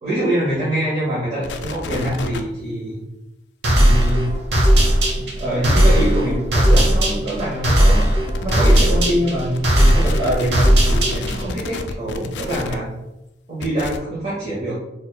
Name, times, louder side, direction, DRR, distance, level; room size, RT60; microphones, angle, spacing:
voice 1, 0.0-3.0 3.7-4.3 5.4-12.9 13.5-14.7, right 1 dB, 35° right, -9 dB, 1.0 m, -24 dB
sound 1, 1.4-2.4 3.8-4.1 4.8-4.9 6.3-6.4 6.6-6.8 8.3-8.8 9.5-12.8 13.6-14.0, left 4 dB, 65° left, 0.3 m, -30 dB
sound 2, 3.6-11.5, equal, 65° right, 0.8 m, -17 dB
4.4 x 2.4 x 2.2 m, 0.91 s
head